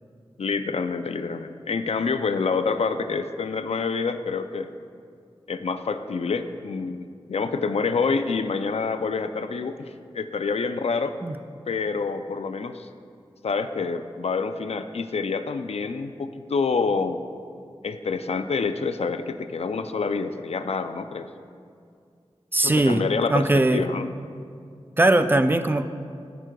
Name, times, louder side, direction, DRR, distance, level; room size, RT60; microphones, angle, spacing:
voice 1, 0.4-4.7 5.5-11.2 11.7-12.9 13.4-17.2 17.8-21.3 22.6-24.1, left 4 dB, 80° left, 9 dB, 0.4 m, -27 dB
voice 2, 22.5-23.0 23.3-23.9 25.0-25.9, right 2 dB, 20° right, 9 dB, 0.4 m, -20 dB
14.5 x 6.1 x 2.3 m, 2.3 s
wide cardioid pair, 65°, 10 cm